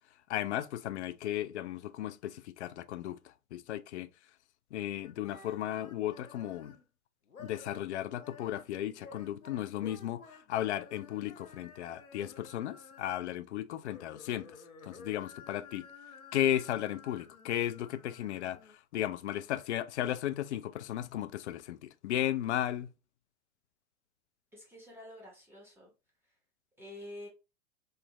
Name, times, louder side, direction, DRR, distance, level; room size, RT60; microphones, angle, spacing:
voice 1, 0.3-4.1 4.7-6.8 7.4-14.6 14.9-15.9 16.3-22.9, left 12 dB, 55° left, 0.5 m, -35 dB
sound 1, 5.0-6.8 7.3-7.9 8.1-13.4 13.7-18.7, left 4 dB, 85° left, 0.8 m, -53 dB
voice 2, 24.5-25.9 26.8-27.3, left 1 dB, 5° right, 1.4 m, -48 dB
4.2 x 2.6 x 3.0 m
figure-of-eight pair, 95°, 41 cm